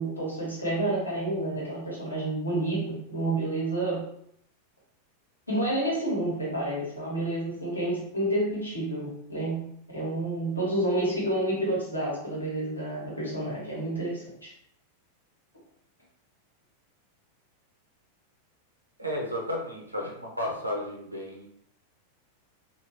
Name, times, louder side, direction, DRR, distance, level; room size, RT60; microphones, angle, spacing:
voice 1, 0.0-4.1 5.5-14.5, right 1 dB, 80° left, -5 dB, 1.3 m, -29 dB
voice 2, 19.0-21.5, left 1 dB, 85° right, -1 dB, 0.7 m, -33 dB
2.9 x 2.6 x 2.9 m, 0.71 s
figure-of-eight pair, 90°, 0 cm